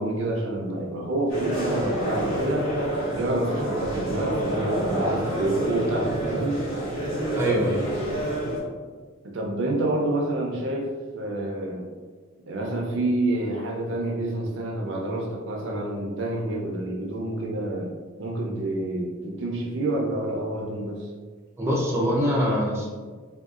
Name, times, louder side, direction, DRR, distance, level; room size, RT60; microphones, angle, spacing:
voice 1, 0.0-2.7 3.1-6.6 9.2-11.9 12.5-17.9 18.2-21.1, right 1 dB, 65° right, -1 dB, 0.5 m, -28 dB
sound 1, 1.3-8.6, right 1 dB, 90° left, 1.1 m, -28 dB
voice 2, 7.3-7.8 21.6-22.9, equal, 15° right, -4 dB, 0.4 m, -24 dB
3.6 x 2.3 x 2.4 m, 1.5 s
head